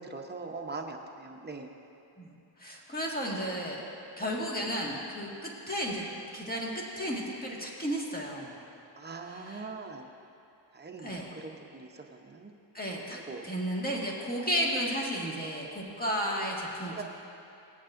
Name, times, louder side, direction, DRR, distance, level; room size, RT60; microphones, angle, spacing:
voice 1, 0.0-1.7 4.1-4.3 9.0-10.0 10.7-12.5 13.1-13.5 16.9-17.0, right 3 dB, 20° right, 3 dB, 0.8 m, -42 dB
voice 2, 2.6-3.8 4.2-6.0 6.3-8.5 9.2-9.7 11.0-11.3 12.7-17.0, equal, 20° left, -3 dB, 1.8 m, -33 dB
17.0 x 8.5 x 2.6 m, 2.8 s
cardioid pair, 95°, 47 cm